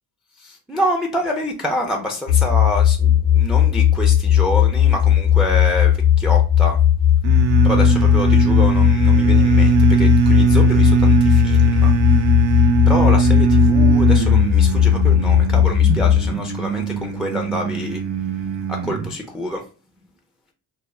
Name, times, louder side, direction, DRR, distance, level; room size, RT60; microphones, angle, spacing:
voice 1, 0.4-6.8 7.6-11.9 12.9-18.0 18.7-19.6, left 1 dB, ahead, 0.4 m, -27 dB
sound 1, 2.3-16.3, left 10 dB, 85° left, 1.0 m, -16 dB
sound 2, 7.2-19.1, right 7 dB, 85° right, 0.5 m, -20 dB
2.3 x 2.0 x 3.1 m
cardioid pair, 65°, 44 cm